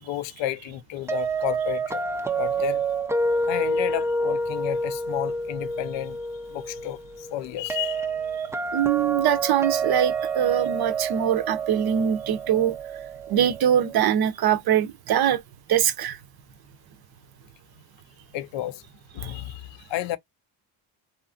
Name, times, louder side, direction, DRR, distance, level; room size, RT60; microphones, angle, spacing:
voice 1, 0.0-2.0 2.4-2.8 3.5-6.2 6.5-8.1 18.3-18.8 19.1-20.2, left 13 dB, 70° left, 0.5 m, -31 dB
sound 1, 1.1-13.9, right 3 dB, 5° right, 0.3 m, -28 dB
voice 2, 8.7-12.8 13.3-15.4 15.7-16.2 19.2-19.3, right 10 dB, 55° right, 0.6 m, -23 dB
2.8 x 2.5 x 2.3 m
cardioid pair, 85°, 47 cm